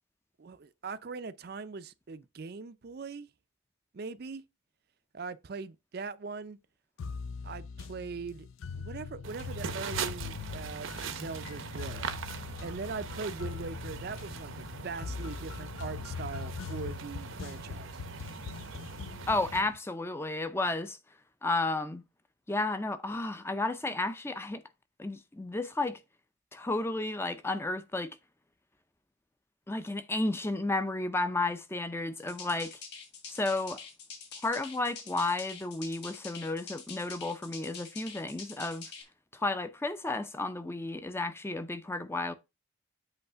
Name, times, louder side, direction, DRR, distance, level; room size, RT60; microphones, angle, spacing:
voice 1, 0.4-3.3 3.9-4.4 5.1-6.6 7.4-8.5 8.7-12.1 12.6-17.9, right 4 dB, 50° right, 0.5 m, -41 dB
sound 1, 7.0-19.8, left 5 dB, 75° left, 0.4 m, -42 dB
sound 2, 9.2-19.6, right 5 dB, 75° right, 0.8 m, -41 dB
voice 2, 19.3-21.0 21.4-22.0 22.5-24.6 25.0-26.0 26.5-28.2 29.7-32.8 33.3-33.8 34.4-38.9 39.3-42.3, left 2 dB, 10° left, 0.4 m, -32 dB
sound 3, 32.2-39.0, left 5 dB, 55° left, 2.5 m, -46 dB
7.9 x 3.2 x 5.5 m
head